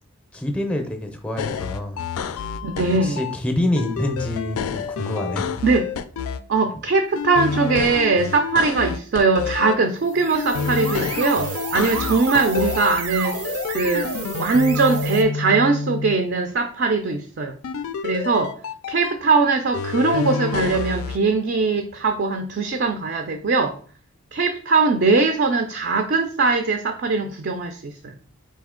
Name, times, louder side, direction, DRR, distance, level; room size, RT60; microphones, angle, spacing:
voice 1, 0.3-2.0 3.0-5.5 6.7-6.8, left 1 dB, 5° left, 4 dB, 0.5 m, -26 dB
sound 1, 1.4-3.4 3.8-6.4 7.2-9.8 10.3-12.9 13.2-16.1 17.6-19.1 19.7-21.2, left 6 dB, 80° left, 0.3 m, -28 dB
voice 2, 2.6-3.2 5.6-5.9 6.5-13.4 13.7-14.1 14.4-17.5 18.0-18.5 18.9-23.7 24.3-28.1, right 4 dB, 50° right, 6 dB, 0.4 m, -21 dB
sound 2, 10.0-15.2, right 4 dB, 85° right, 0.7 m, -31 dB
4.2 x 2.8 x 3.7 m, 0.43 s
head